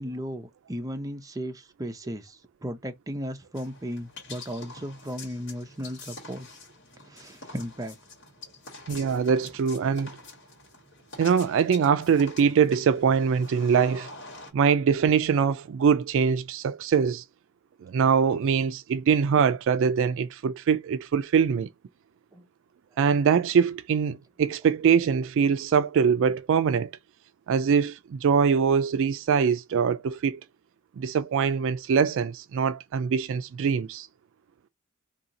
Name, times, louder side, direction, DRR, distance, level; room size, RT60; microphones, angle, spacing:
voice 1, 0.0-6.5 7.0-8.0 22.3-22.5, equal, 15° right, 0.6 m, -35 dB
sound 1, 3.6-14.5, left 3 dB, 65° left, 1.7 m, -46 dB
voice 2, 8.9-10.1 11.2-14.1 14.5-17.2 17.8-21.7 23.0-26.9 27.5-30.4 31.0-34.1, right 6 dB, 65° right, 0.3 m, -23 dB
2.8 x 2.7 x 3.9 m
head